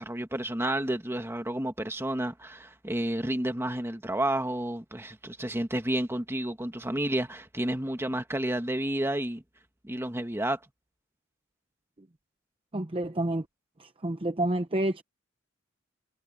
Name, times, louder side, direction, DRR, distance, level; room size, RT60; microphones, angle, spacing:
voice 1, 0.0-9.4 9.8-10.6, right 1 dB, 10° right, 1.6 m, -30 dB
voice 2, 12.7-13.4 13.8-15.0, right 1 dB, 25° right, 0.8 m, -29 dB
head